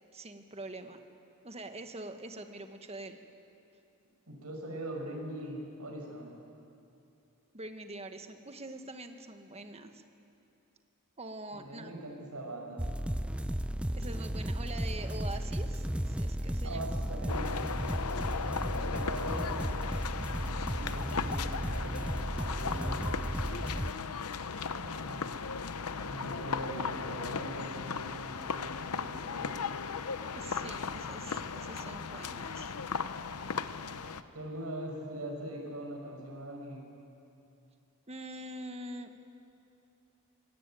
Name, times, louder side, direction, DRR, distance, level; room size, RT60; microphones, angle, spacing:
voice 1, 0.1-1.0 1.4-3.2 7.5-10.0 11.2-11.9 14.0-16.8 30.3-32.7 38.1-39.1, right 2 dB, 30° right, 7 dB, 1.4 m, -44 dB
voice 2, 4.3-6.3 11.6-12.9 16.6-18.0 18.5-19.7 20.7-23.3 24.4-25.3 26.0-29.8 34.3-36.9, right 1 dB, 85° right, 0 dB, 5.9 m, -42 dB
sound 1, 12.8-23.9, equal, 5° right, 0.4 m, -34 dB
sound 2, 17.3-34.2, left 5 dB, 85° left, 0.8 m, -37 dB
23.0 x 18.0 x 9.2 m, 2.7 s
head